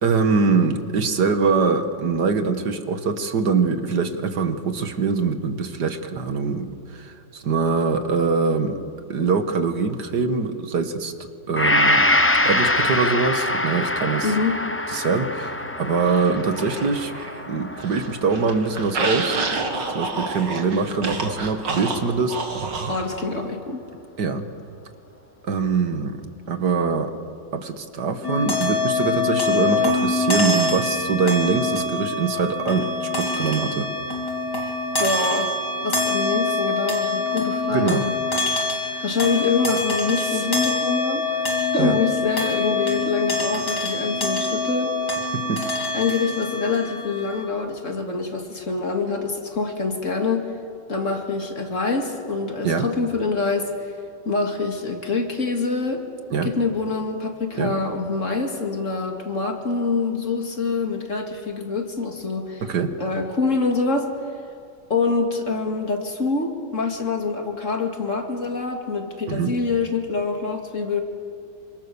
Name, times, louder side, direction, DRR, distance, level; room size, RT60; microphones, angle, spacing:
voice 1, 0.0-8.8 9.1-11.1 11.5-12.0 12.4-14.3 14.9-17.1 17.5-19.4 19.9-22.4 24.2-24.5 25.4-27.1 27.5-33.9 37.7-38.1 38.9-39.0 41.8-42.0 45.3-45.6 52.6-52.9 56.3-56.5 57.6-57.7 62.6-62.9 69.3-69.5, right 4 dB, 70° right, 8 dB, 2.1 m, -23 dB
Gong, 11.6-19.9 20.3-20.4, left 1 dB, 15° left, 0.4 m, -24 dB
voice 2, 14.2-14.6 22.9-23.8 34.6-35.5 35.8-38.1 39.0-45.0 45.9-50.5 50.9-54.0 54.2-56.1 56.4-62.6 63.0-64.1 64.9-71.0, left 4 dB, 45° left, 3 dB, 2.7 m, -25 dB
sound 1, 16.1-17.4 17.7-23.1, right 3 dB, 85° right, 2.8 m, -29 dB
sound 2, 28.2-47.4, left 3 dB, 65° left, 4.3 m, -25 dB
27.0 x 25.5 x 7.1 m, 2.4 s
omnidirectional pair, 1.9 m